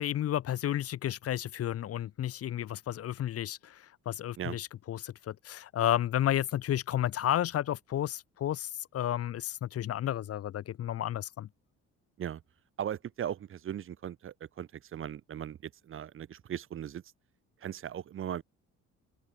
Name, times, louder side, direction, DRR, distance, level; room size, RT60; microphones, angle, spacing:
voice 1, 0.0-3.7 4.1-8.7 8.9-11.5, left 11 dB, 50° left, 1.1 m, -32 dB
voice 2, 12.8-17.0 17.6-18.4, right 10 dB, 45° right, 1.0 m, -38 dB
open air
cardioid pair, 150°, 29 cm